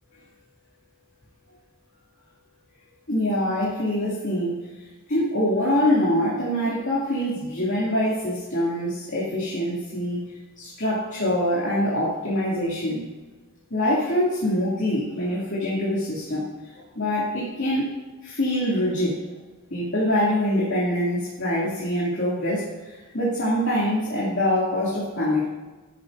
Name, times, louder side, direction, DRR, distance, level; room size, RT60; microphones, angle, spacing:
voice 1, 3.1-4.6 5.1-10.2 10.6-13.0 13.7-16.5 16.9-17.9 18.2-19.2 19.7-25.5, left 1 dB, 60° left, -8 dB, 2.5 m, -24 dB
12.5 x 9.3 x 2.6 m, 1.2 s
head